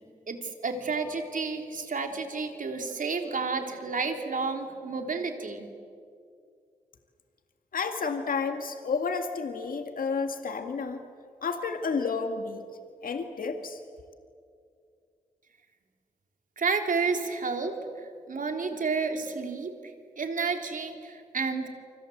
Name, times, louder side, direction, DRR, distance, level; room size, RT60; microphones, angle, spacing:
voice 1, 0.3-5.7 16.6-17.8 18.3-21.7, right 4 dB, 65° right, 4 dB, 3.4 m, -31 dB
voice 2, 7.7-11.0 11.4-12.6 13.0-13.8, left 5 dB, 75° left, 6 dB, 2.0 m, -31 dB
29.5 x 25.5 x 8.0 m, 2.3 s
cardioid pair, 60°, 14 cm